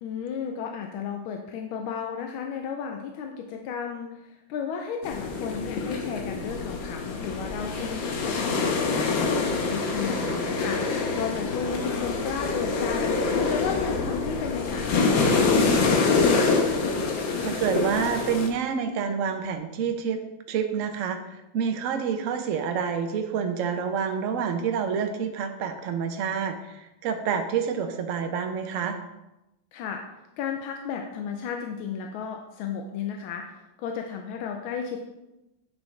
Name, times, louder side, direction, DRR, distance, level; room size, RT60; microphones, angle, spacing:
voice 1, 0.0-4.2 4.5-9.2 9.7-13.2 13.5-16.5 29.7-30.0 30.4-35.0, left 7 dB, 90° left, 3 dB, 1.5 m, -33 dB
sound 1, 5.0-18.5, left 4 dB, 70° left, 1.6 m, -25 dB
voice 2, 17.4-20.2 20.5-29.0, right 7 dB, 70° right, 6 dB, 0.7 m, -28 dB
8.5 x 6.3 x 3.2 m, 0.95 s
omnidirectional pair, 2.2 m